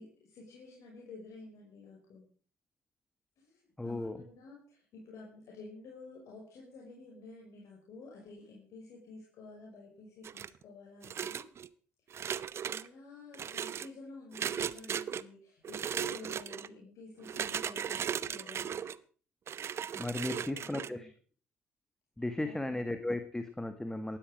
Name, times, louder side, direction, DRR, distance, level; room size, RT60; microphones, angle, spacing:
voice 1, 0.0-2.3 3.4-11.5 12.1-18.9 20.2-21.1 22.4-22.7, left 3 dB, 55° left, -2 dB, 5.6 m, -51 dB
voice 2, 3.8-4.2 19.9-21.1 22.2-24.2, left 2 dB, 10° left, 9 dB, 1.8 m, -35 dB
sound 1, 10.2-10.6 11.0-11.7 12.1-12.9 13.3-13.9 14.3-15.2 15.6-16.7 17.2-19.0 19.5-20.9, right 8 dB, 40° right, 0.8 m, -37 dB
18.5 x 13.0 x 5.1 m, 0.41 s
hypercardioid pair, 60°, 6 cm